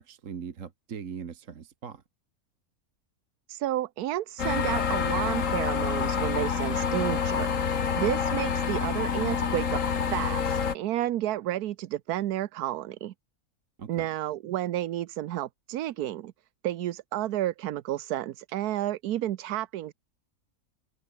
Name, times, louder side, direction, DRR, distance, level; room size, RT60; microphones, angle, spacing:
voice 1, 0.0-2.0 13.8-14.1, right 7 dB, 60° right, 1.6 m, -40 dB
voice 2, 3.5-7.5 7.9-9.8 10.1-13.1 13.9-16.3 16.6-19.9, right 13 dB, 80° right, 1.2 m, -31 dB
sound 1, 4.4-10.7, left 6 dB, 60° left, 1.9 m, -27 dB
omnidirectional pair, 1.6 m